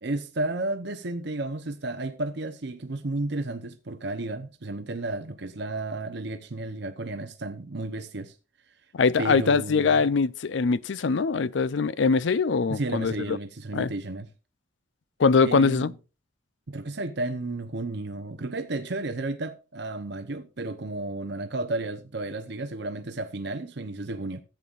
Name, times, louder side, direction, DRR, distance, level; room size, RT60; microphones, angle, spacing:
voice 1, 0.0-8.3 9.2-10.1 12.7-14.3 15.4-15.9 16.7-24.4, right 2 dB, 65° right, 0.8 m, -32 dB
voice 2, 8.9-13.4 13.7-13.9 15.2-15.9, left 4 dB, 70° left, 0.5 m, -22 dB
15.0 x 8.8 x 2.5 m
head